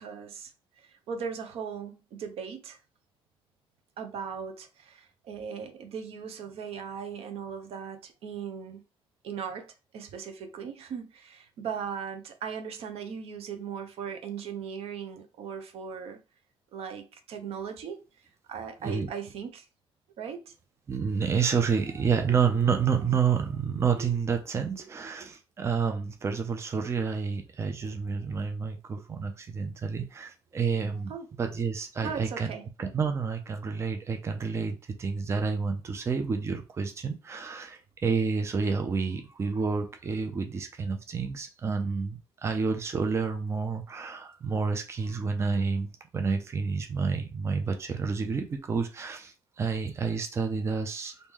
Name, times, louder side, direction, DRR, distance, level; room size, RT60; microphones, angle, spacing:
voice 1, 0.0-2.8 4.0-8.8 9.2-16.2 16.7-18.0 18.5-19.7 20.2-20.5 31.1-31.4 32.0-32.6, right 7 dB, 80° right, 0.7 m, -38 dB
voice 2, 20.9-31.1 31.4-32.5 32.8-51.3, right 5 dB, 25° right, 0.5 m, -29 dB
3.1 x 2.6 x 3.5 m
cardioid pair, 140°, 10 cm